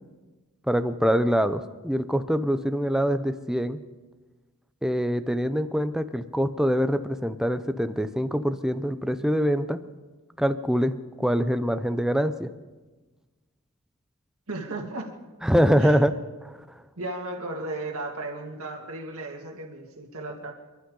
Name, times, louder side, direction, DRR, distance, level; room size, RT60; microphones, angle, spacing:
voice 1, 0.7-3.8 4.8-9.8 10.4-12.5 15.4-16.1 16.4-16.6, equal, 5° right, 9 dB, 0.6 m, -24 dB
voice 2, 14.5-15.1 15.8-15.9 17.0-20.5, right 2 dB, 65° right, 1 dB, 2.3 m, -35 dB
28.5 x 11.5 x 3.9 m, 1.2 s
head